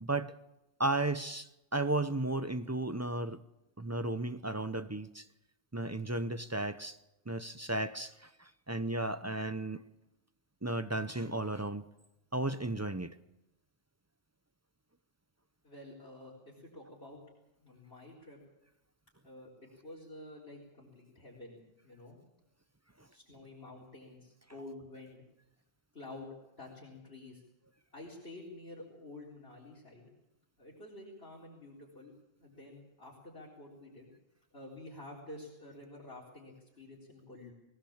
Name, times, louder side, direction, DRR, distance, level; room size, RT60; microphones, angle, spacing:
voice 1, 0.0-0.3 0.8-3.4 3.8-5.3 5.7-7.0 7.3-9.8 10.6-11.9 12.3-13.1, right 2 dB, 15° right, 0.6 m, -34 dB
voice 2, 15.6-17.2 17.6-18.4 19.2-19.5 19.8-22.2 23.1-25.2 25.9-27.4 27.9-30.1 30.6-32.1 32.4-34.1 34.5-37.5, left 2 dB, 50° left, 4.3 m, -50 dB
21.0 x 17.5 x 7.3 m
omnidirectional pair, 1.3 m